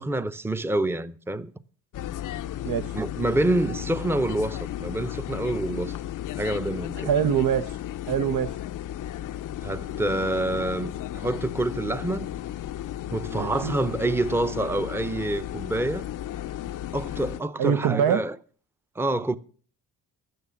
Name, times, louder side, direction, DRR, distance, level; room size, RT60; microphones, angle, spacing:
voice 1, 0.0-1.5 2.9-5.9 6.4-7.1 9.6-12.3 13.1-16.1 16.9-18.4 19.0-19.4, right 2 dB, 5° right, 0.6 m, -27 dB
sound 1, 1.9-17.4, left 12 dB, 60° left, 0.5 m, -34 dB
voice 2, 7.0-7.7 8.1-8.5 13.3-13.7 17.6-18.2, right 8 dB, 80° right, 0.9 m, -23 dB
12.5 x 9.3 x 7.1 m
cardioid pair, 80°, 35 cm